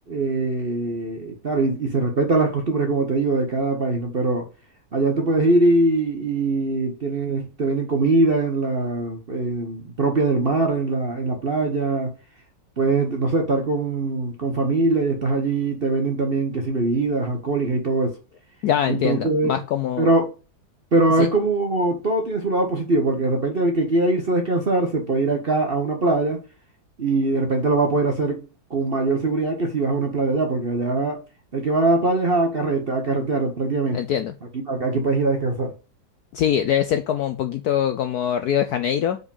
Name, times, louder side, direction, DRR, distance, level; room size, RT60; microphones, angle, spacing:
voice 1, 0.1-4.5 4.9-12.1 12.8-18.2 18.9-19.6 20.0-20.3 20.9-26.4 27.0-31.2 31.5-34.0 34.7-35.7, right 2 dB, 40° right, 0.9 m, -22 dB
voice 2, 18.6-20.1 21.2-21.3 33.9-34.3 36.3-39.2, left 10 dB, 70° left, 0.9 m, -23 dB
5.0 x 4.8 x 5.4 m
omnidirectional pair, 2.1 m